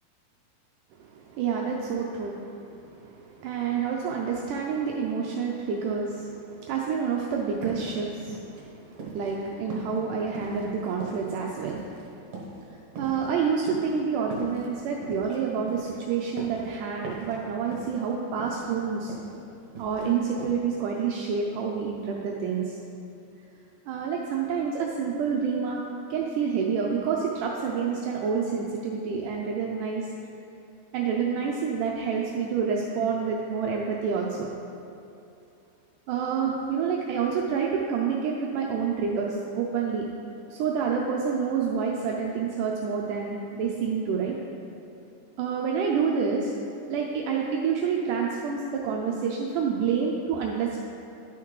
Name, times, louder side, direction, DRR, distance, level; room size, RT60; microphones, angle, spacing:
voice 1, 1.0-11.9 13.0-19.1 19.8-22.8 23.9-25.8 26.1-30.1 30.9-34.5 36.1-40.1 40.5-44.3 45.4-46.5 46.9-50.8, right 6 dB, 85° right, -1 dB, 1.8 m, -28 dB
sound 1, 7.6-9.4 9.7-12.1 12.3-12.7 13.0-15.4 15.7-16.8 17.0-17.4 17.7-18.1 18.4-19.4 19.6-20.1 20.4-20.6, right 3 dB, 60° right, 2.3 m, -40 dB
11.5 x 5.8 x 3.1 m, 2.6 s
omnidirectional pair, 4.3 m